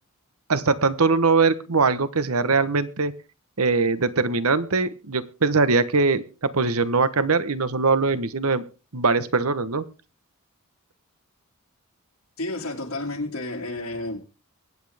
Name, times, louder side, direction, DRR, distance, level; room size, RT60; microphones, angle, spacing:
voice 1, 0.5-3.1 3.6-8.6 8.9-9.8, right 4 dB, 80° right, 1.1 m, -22 dB
voice 2, 12.4-14.2, left 2 dB, 85° left, 2.5 m, -31 dB
23.5 x 8.6 x 3.5 m
head